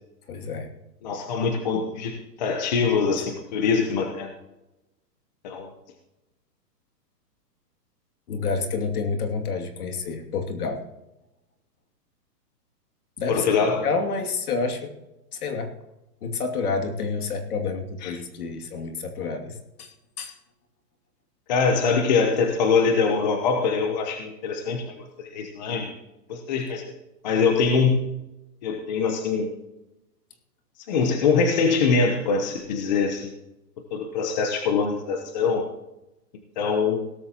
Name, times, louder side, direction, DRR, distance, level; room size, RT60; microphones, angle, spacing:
voice 1, 0.3-0.7 8.3-10.8 13.2-13.6 13.8-14.9 15.3-15.7 16.2-20.3, left 4 dB, 60° left, 4 dB, 2.7 m, -29 dB
voice 2, 1.0-4.3 5.4-5.7 13.3-13.9 18.0-18.1 21.5-24.8 25.2-25.9 26.3-26.8 27.2-28.0 28.6-29.5 30.9-33.3 33.9-35.7 36.6-37.0, left 5 dB, 25° left, 4 dB, 1.0 m, -23 dB
17.0 x 13.5 x 3.0 m, 0.95 s
hypercardioid pair, 170°, 49 cm